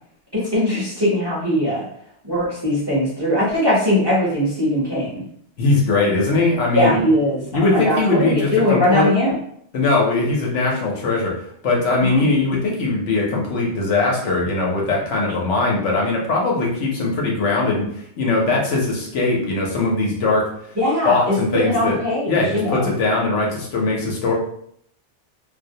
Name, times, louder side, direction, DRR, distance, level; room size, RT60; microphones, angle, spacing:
voice 1, 0.3-1.8 2.2-5.2 6.7-9.3 12.0-12.3 20.8-22.9, left 1 dB, 25° right, -8 dB, 0.7 m, -20 dB
voice 2, 5.6-7.0 7.5-9.1 9.7-11.3 11.6-17.9 18.2-20.5 21.0-22.0 22.3-24.3, left 3 dB, 75° left, -2 dB, 1.0 m, -20 dB
2.4 x 2.0 x 2.7 m, 0.68 s
omnidirectional pair, 1.2 m